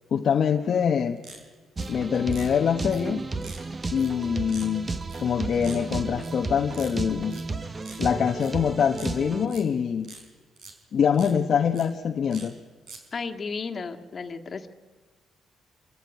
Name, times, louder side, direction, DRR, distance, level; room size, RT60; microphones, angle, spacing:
voice 1, 0.1-1.2 1.9-3.3 3.9-4.9 5.2-7.4 8.0-10.1 10.9-12.5, left 7 dB, 55° left, 3 dB, 1.0 m, -24 dB
sound 1, 1.2-1.9 2.3-2.5 2.9-3.0 3.4-3.6 4.0-4.1 4.5-4.7 5.1-5.3 5.6-5.8 6.2-6.4 6.7-7.0 7.3-7.4 7.8-8.0 8.4-8.5 8.9-9.6 10.0-10.2 10.6-10.7 11.1-11.3 11.7-11.9 12.3-12.5 12.9-13.0, right 4 dB, 70° right, 4.4 m, -44 dB
sound 2, 1.8-9.5, right 3 dB, 30° right, 1.2 m, -33 dB
voice 2, 13.1-14.7, left 4 dB, 40° left, 6 dB, 1.8 m, -33 dB
25.5 x 14.5 x 9.7 m, 1.5 s
cardioid pair, 90°, 0 cm